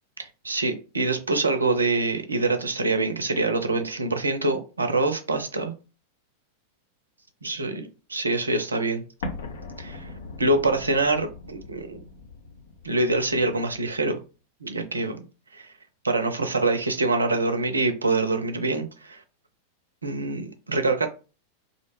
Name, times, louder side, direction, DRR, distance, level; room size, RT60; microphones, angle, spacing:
voice 1, 0.2-5.7 7.4-9.0 9.8-10.1 10.4-12.0 12.8-14.2 14.6-15.2 15.5-15.7 16.0-19.2 20.0-21.1, right 2 dB, 75° right, 0.4 m, -25 dB
Explosion, 9.2-14.0, left 3 dB, 65° left, 0.5 m, -40 dB
2.4 x 2.1 x 3.1 m
figure-of-eight pair, 90°, 0 cm